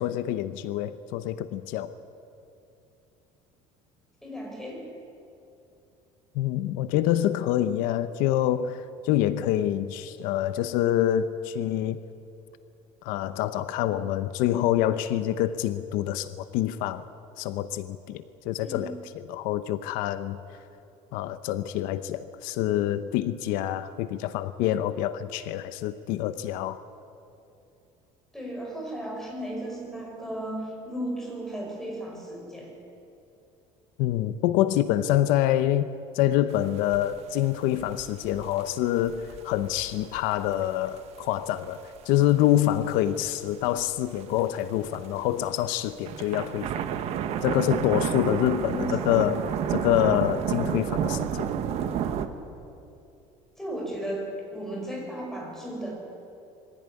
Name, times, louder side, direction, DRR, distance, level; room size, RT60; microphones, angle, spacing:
voice 1, 0.0-1.9 6.3-12.0 13.0-17.1 17.4-19.0 19.3-20.4 21.1-26.8 34.0-35.9 36.1-46.8 47.4-51.5, left 12 dB, 80° left, 12 dB, 0.9 m, -26 dB
voice 2, 4.2-4.9 18.6-18.9 28.3-32.7 48.4-49.2 53.6-55.9, right 1 dB, 5° left, -1 dB, 5.4 m, -35 dB
sound 1, 36.5-36.6 36.9-41.0 41.4-41.9 42.2-43.3 43.8-45.2 45.8-52.3, right 9 dB, 50° right, 1.3 m, -30 dB
23.0 x 16.0 x 9.8 m, 2.8 s
cardioid pair, 165°, 14 cm